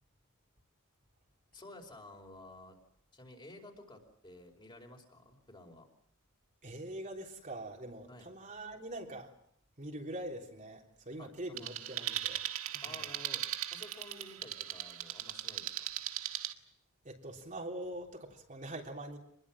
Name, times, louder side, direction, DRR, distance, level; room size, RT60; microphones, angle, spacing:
voice 1, 1.5-2.8 3.1-5.9 8.1-8.3 11.2-11.8 12.8-15.9, left 2 dB, 25° left, 2 dB, 5.0 m, -53 dB
voice 2, 6.6-9.3 9.8-12.4 12.7-13.1 17.1-19.2, right 1 dB, 40° right, 1 dB, 3.6 m, -43 dB
sound 1, 11.6-16.5, right 12 dB, 90° right, 1.8 m, -38 dB
26.0 x 21.5 x 7.5 m, 0.69 s
head